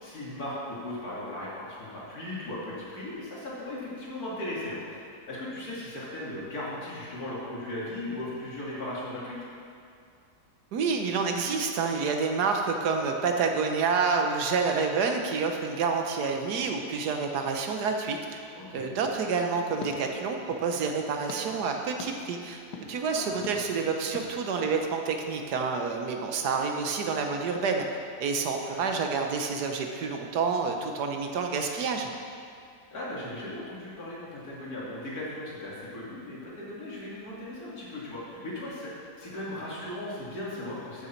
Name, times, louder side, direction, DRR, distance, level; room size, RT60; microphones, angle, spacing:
voice 1, 0.0-9.4 18.5-18.9 23.1-23.4 23.6-23.8 28.7-28.8 32.9-38.9 39.2-41.1, left 1 dB, 65° left, -7 dB, 3.0 m, -37 dB
voice 2, 10.7-18.4 18.7-22.6 22.9-27.8 28.2-32.1, right 5 dB, 75° right, 3 dB, 1.5 m, -28 dB
sound 1, 19.0-20.7 21.3-21.4 22.0-22.1 22.7-22.9 23.4-23.6 24.1-24.3, left 4 dB, 85° left, 1.7 m, -42 dB
13.5 x 6.8 x 4.5 m, 2.4 s
omnidirectional pair, 1.7 m